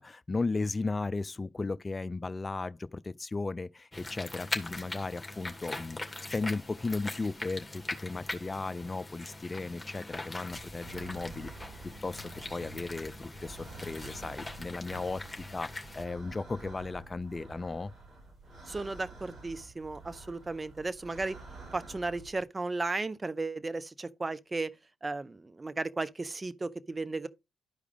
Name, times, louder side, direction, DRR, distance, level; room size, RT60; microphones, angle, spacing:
voice 1, 0.0-11.5 11.8-15.2 15.5-17.9, left 3 dB, 30° left, 0.5 m, -36 dB
sound 1, 3.9-16.1, left 2 dB, 15° left, 2.4 m, -41 dB
sound 2, 10.5-22.4, right 3 dB, 45° right, 5.5 m, -49 dB
voice 2, 18.7-21.4 21.7-24.7 25.0-27.3, right 3 dB, 30° right, 0.8 m, -35 dB
12.0 x 4.9 x 3.4 m
hypercardioid pair, 40°, 0 cm